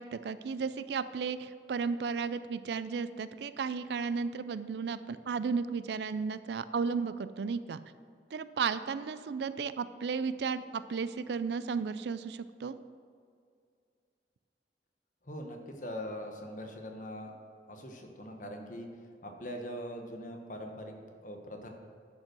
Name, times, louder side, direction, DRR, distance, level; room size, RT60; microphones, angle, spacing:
voice 1, 0.0-7.8 8.3-10.6 10.9-12.8, right 5 dB, 70° right, 14 dB, 0.4 m, -34 dB
voice 2, 15.2-17.3 17.7-18.9 19.2-20.9 21.2-21.7, equal, 45° left, 3 dB, 1.1 m, -42 dB
10.5 x 5.4 x 6.0 m, 2.3 s
head